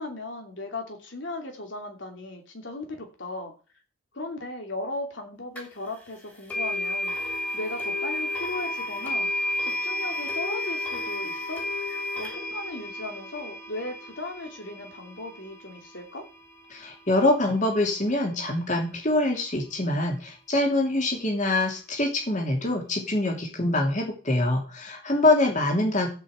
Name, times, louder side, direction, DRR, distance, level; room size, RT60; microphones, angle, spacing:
voice 1, 0.0-3.5 4.1-9.3 9.6-11.6 12.1-16.3, left 2 dB, 60° left, 3 dB, 2.7 m, -37 dB
sound 1, 5.5-5.6 6.5-17.5, left 1 dB, 10° left, 2.7 m, -32 dB
voice 2, 16.7-26.1, left 2 dB, 35° left, 0 dB, 2.8 m, -24 dB
14.0 x 5.6 x 7.9 m, 0.38 s
head